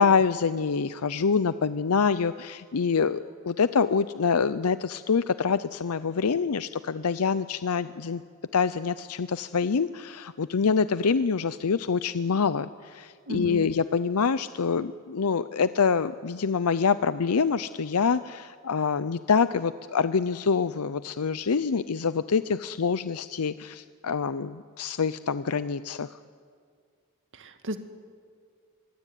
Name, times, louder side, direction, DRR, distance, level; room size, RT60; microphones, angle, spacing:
voice 1, 0.0-8.2 8.5-26.2, left 5 dB, 80° left, 14 dB, 0.6 m, -26 dB
voice 2, 13.3-13.7 27.3-27.8, right 1 dB, 60° right, 7 dB, 2.1 m, -34 dB
25.0 x 23.0 x 9.3 m, 2.1 s
head